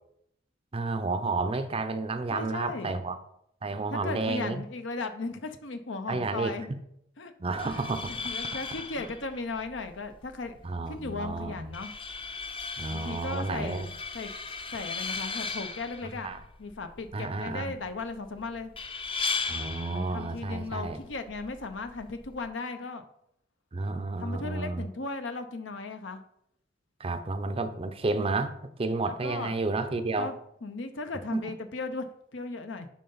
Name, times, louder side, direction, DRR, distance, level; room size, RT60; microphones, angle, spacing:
voice 1, 0.7-3.2 3.6-4.6 6.1-6.8 7.4-8.1 8.5-8.6 10.6-11.7 12.8-13.9 16.2-16.4 17.1-17.7 19.5-21.0 23.7-24.8 27.0-30.3 31.3-31.5, right 3 dB, 30° right, 9 dB, 0.5 m, -31 dB
voice 2, 2.3-2.9 3.9-6.7 7.2-10.6 10.9-11.9 12.9-14.3 14.7-16.3 16.6-18.7 19.9-23.0 24.2-26.2 29.0-29.6 30.2-30.4 30.6-32.1 32.3-32.9, left 3 dB, 75° left, 8 dB, 0.8 m, -36 dB
sound 1, 7.5-22.5, left 4 dB, 30° left, 0.6 m, -38 dB
10.5 x 3.8 x 3.9 m, 0.74 s
head